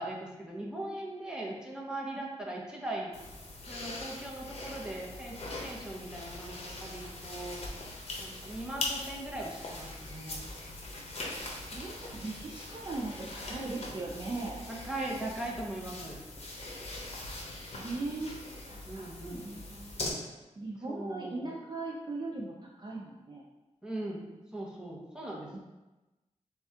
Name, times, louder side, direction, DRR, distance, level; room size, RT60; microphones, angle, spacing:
voice 1, 0.0-3.1 3.7-7.6 8.2-10.4 14.7-16.2 18.9-19.5 20.9-21.5 23.8-24.2 24.5-25.5, right 1 dB, 5° right, -3 dB, 0.9 m, -39 dB
sound 1, 3.1-20.1, left 2 dB, 55° left, 0.9 m, -42 dB
voice 2, 11.7-14.6 17.7-19.9 20.6-23.4 25.5-25.6, right 2 dB, 35° right, -3 dB, 0.5 m, -39 dB
6.6 x 2.4 x 2.8 m, 1.1 s
wide cardioid pair, 105°, 13 cm